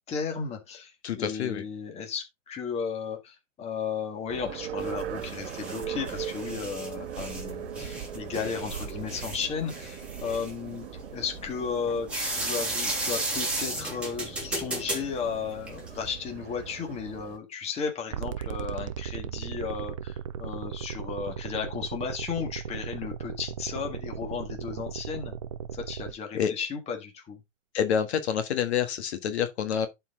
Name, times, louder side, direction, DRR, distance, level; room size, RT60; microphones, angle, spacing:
voice 1, 0.1-10.9 11.1-25.3 25.7-27.4, left 6 dB, 15° left, 1.7 m, -34 dB
voice 2, 1.0-1.6 26.3-26.5 27.7-29.9, left 8 dB, 60° left, 1.5 m, -27 dB
sound 1, 4.3-17.4, right 9 dB, 55° right, 1.6 m, -40 dB
sound 2, 4.8-16.1, right 2 dB, 5° right, 2.9 m, -35 dB
sound 3, 18.1-26.1, right 8 dB, 30° right, 0.3 m, -36 dB
11.0 x 4.5 x 3.7 m
hypercardioid pair, 150°, 38 cm